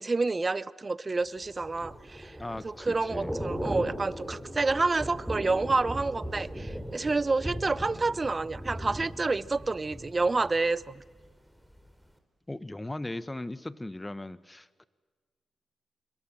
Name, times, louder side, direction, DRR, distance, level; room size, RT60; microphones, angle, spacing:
voice 1, 0.0-2.4 2.6-11.0, right 3 dB, 35° right, 0.8 m, -28 dB
Thunder / Rain, 1.4-11.3 11.6-11.9, equal, ahead, 4.1 m, -38 dB
voice 2, 2.4-3.3 12.5-14.9, left 1 dB, 20° left, 1.3 m, -38 dB
25.5 x 21.5 x 7.6 m
supercardioid pair, 45°, 0 cm